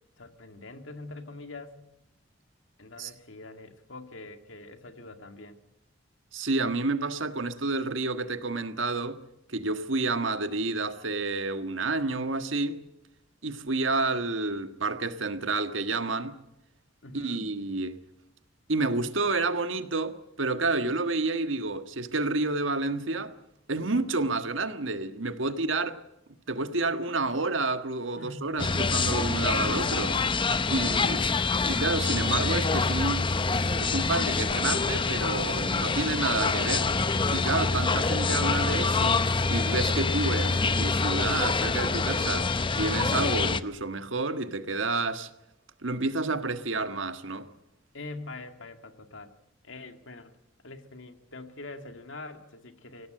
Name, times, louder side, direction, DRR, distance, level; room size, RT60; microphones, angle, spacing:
voice 1, 0.2-1.8 2.8-5.6 17.0-17.4 28.2-28.7 30.5-31.4 47.9-49.3 49.6-50.3 50.6-53.1, left 2 dB, 80° left, 2.2 m, -44 dB
voice 2, 6.3-9.2 9.5-12.8 13.4-16.4 17.1-18.0 18.7-23.3 23.7-26.0 26.5-30.2 30.7-31.3 31.6-33.3 33.8-36.9 37.3-45.3 45.8-47.5, right 3 dB, 85° right, 1.6 m, -29 dB
sound 1, 28.6-43.6, left 4 dB, 25° left, 0.7 m, -26 dB
25.5 x 17.5 x 7.8 m
head